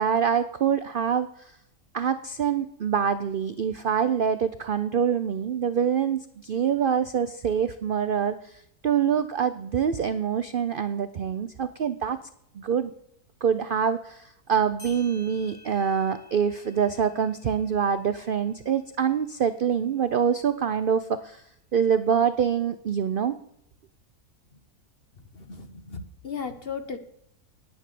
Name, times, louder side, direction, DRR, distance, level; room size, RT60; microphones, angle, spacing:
voice 1, 0.0-1.5 1.9-12.2 12.5-12.9 13.4-21.4 21.7-23.4, right 7 dB, 65° right, 11 dB, 0.5 m, -25 dB
sound 1, 14.5-14.6 14.8-19.9, left 2 dB, 60° left, 5.4 m, -53 dB
voice 2, 25.3-27.0, left 5 dB, 40° left, 8 dB, 1.2 m, -36 dB
10.0 x 9.7 x 6.7 m, 0.73 s
omnidirectional pair, 1.7 m